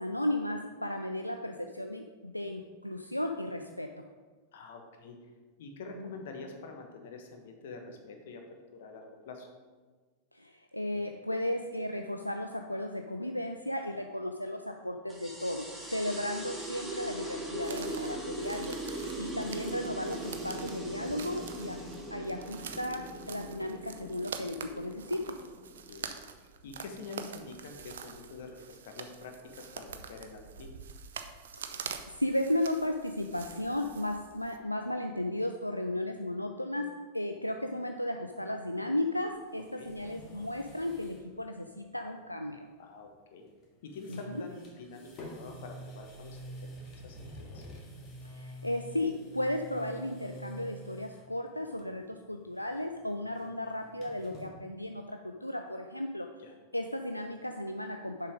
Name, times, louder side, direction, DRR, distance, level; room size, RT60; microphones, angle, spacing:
voice 1, 0.0-3.9 6.0-6.1 10.3-18.7 19.2-21.8 22.1-25.3 31.5-36.9 37.1-42.7 44.1-44.2 48.2-56.3 56.7-58.3, left 1 dB, 90° left, 4 dB, 0.4 m, -35 dB
voice 2, 4.5-5.2 5.6-8.4 8.7-9.5 16.4-16.5 25.8-26.1 26.6-30.8 39.8-39.9 42.8-43.5 43.8-46.5 46.8-47.6 56.4-56.5, left 3 dB, 55° left, 3 dB, 1.2 m, -46 dB
sound 1, 15.1-26.1, right 1 dB, ahead, 1.7 m, -40 dB
sound 2, 17.6-34.6, right 7 dB, 60° right, 0.6 m, -46 dB
sound 3, 39.3-41.3 41.6-41.7 43.4-43.6 43.9-51.3 51.7-52.1 52.4-54.5, equal, 30° left, 1.8 m, -48 dB
6.9 x 5.5 x 5.0 m, 1.4 s
figure-of-eight pair, 90°, 0 cm